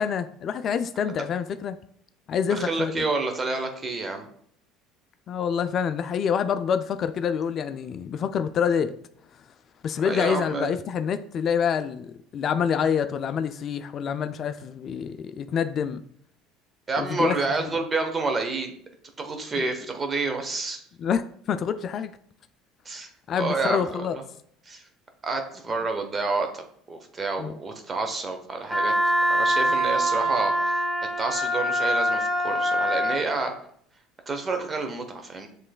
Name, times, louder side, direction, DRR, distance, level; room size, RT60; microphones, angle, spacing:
voice 1, 0.0-1.8 2.3-3.0 5.3-8.9 9.8-16.0 17.0-17.3 21.0-21.2 21.5-22.1 23.3-24.2 27.4-27.6, left 7 dB, 50° left, 0.3 m, -26 dB
voice 2, 2.5-4.3 10.0-10.7 16.9-18.7 19.2-20.8 22.8-23.1 23.4-24.2 24.7-24.8 25.2-28.9 29.3-30.8 31.2-33.5 34.3-35.5, right 3 dB, 30° right, 0.9 m, -29 dB
Wind instrument woodwind instrument, 28.7-33.2, equal, 10° left, 0.8 m, -24 dB
7.4 x 3.1 x 2.3 m
supercardioid pair, 85°, 0 cm